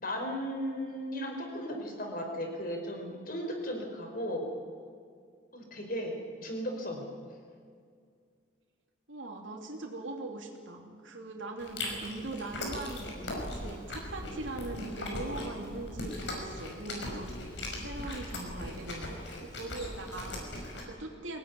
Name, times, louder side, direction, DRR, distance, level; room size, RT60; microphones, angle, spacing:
voice 1, 0.0-4.5 5.5-7.0, equal, 45° left, 3 dB, 4.8 m, -36 dB
voice 2, 9.1-21.4, right 2 dB, 85° right, 1 dB, 2.8 m, -41 dB
Chewing mastication, 11.6-20.8, left 1 dB, 65° left, 5.6 m, -39 dB
24.0 x 18.5 x 9.7 m, 2.2 s
head